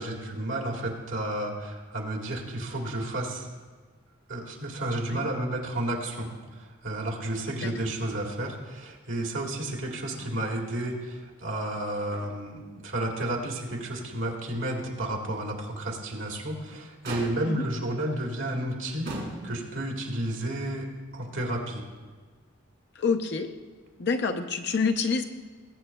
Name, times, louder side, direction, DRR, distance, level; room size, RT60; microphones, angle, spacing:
voice 1, 0.0-3.5 4.3-19.1 19.4-21.8, right 1 dB, 70° right, 0 dB, 1.8 m, -32 dB
Motor vehicle (road), 10.1-10.7 11.0-11.1 11.7-12.6 13.0-13.2 13.7-13.8 16.0-16.5 17.0-17.7 18.5-18.6 19.0-19.8 20.9-21.0, right 1 dB, 55° right, 2.9 m, -40 dB
voice 2, 23.0-23.5 24.0-25.2, left 4 dB, 55° left, 6 dB, 0.6 m, -27 dB
20.0 x 8.2 x 2.2 m, 1.4 s
head